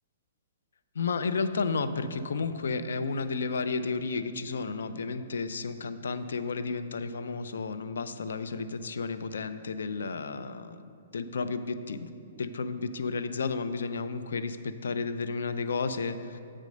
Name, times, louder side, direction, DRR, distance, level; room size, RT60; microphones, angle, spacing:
voice 1, 0.9-12.1 12.4-16.4, left 4 dB, 85° left, 11 dB, 0.4 m, -32 dB
7.4 x 4.9 x 5.2 m, 2.4 s
hypercardioid pair, 155°, 0 cm